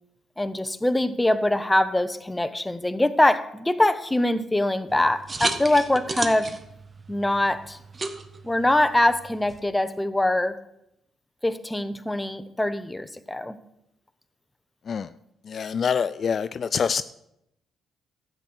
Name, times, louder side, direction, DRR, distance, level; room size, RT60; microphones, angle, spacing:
voice 1, 0.4-6.5 7.1-7.8 8.4-10.6 11.4-13.6, left 1 dB, 10° left, 11 dB, 0.8 m, -23 dB
sound 1, 4.9-9.6, right 3 dB, 30° right, 1.1 m, -34 dB
voice 2, 15.5-17.0, left 6 dB, 50° left, 13 dB, 0.3 m, -25 dB
12.0 x 8.2 x 6.1 m, 0.80 s
cardioid pair, 90°, 0 cm